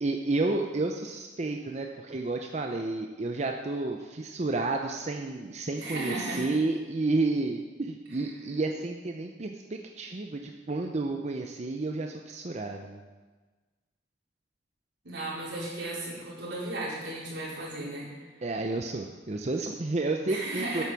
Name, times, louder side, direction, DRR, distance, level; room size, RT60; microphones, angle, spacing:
voice 1, 0.0-13.1 18.4-20.8, right 2 dB, 40° right, 3 dB, 0.6 m, -31 dB
voice 2, 5.8-6.5 15.0-18.1 20.3-20.8, right 2 dB, 85° right, -6 dB, 4.2 m, -35 dB
9.1 x 8.6 x 6.2 m, 1.3 s
head